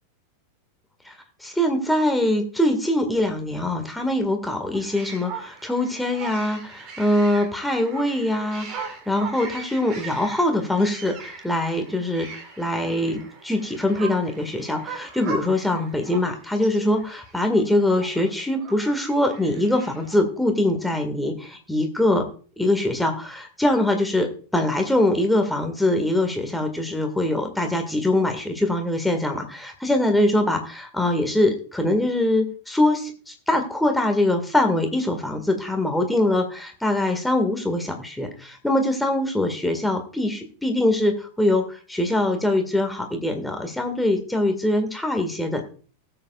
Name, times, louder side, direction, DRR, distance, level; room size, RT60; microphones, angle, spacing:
voice 1, 1.4-12.3 12.6-22.3 22.6-45.6, left 1 dB, 5° left, 4 dB, 1.9 m, -23 dB
sound 1, 4.7-20.2, right 5 dB, 35° right, 2.5 m, -40 dB
19.5 x 7.8 x 2.4 m, 0.40 s
figure-of-eight pair, 90°, 0 cm